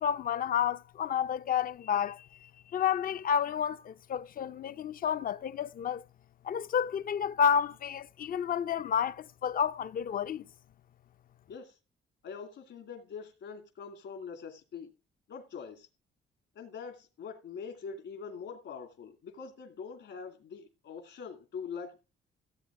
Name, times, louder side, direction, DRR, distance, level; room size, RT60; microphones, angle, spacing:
voice 1, 0.0-6.0 6.4-10.4, left 8 dB, 45° left, 0.5 m, -30 dB
voice 2, 12.2-14.9 15.3-15.9 16.5-22.1, left 6 dB, 70° left, 2.5 m, -43 dB
15.5 x 8.0 x 3.7 m
cardioid pair, 90°, 20 cm